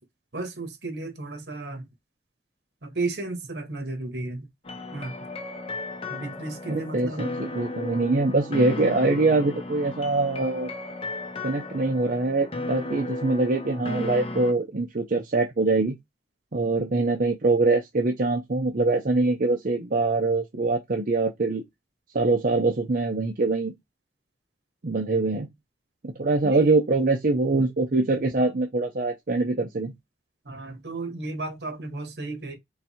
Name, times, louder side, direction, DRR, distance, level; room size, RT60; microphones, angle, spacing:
voice 1, 0.3-1.9 2.8-4.5 4.9-5.1 6.1-7.2 26.4-26.8 30.4-32.6, right 2 dB, 70° right, 1.6 m, -33 dB
sound 1, 4.6-14.5, left 2 dB, 35° left, 0.7 m, -35 dB
voice 2, 6.7-7.3 7.5-10.7 11.4-16.0 16.5-21.6 22.1-23.7 24.8-25.5 26.0-29.9, right 3 dB, 50° right, 0.7 m, -24 dB
4.0 x 2.7 x 4.3 m
head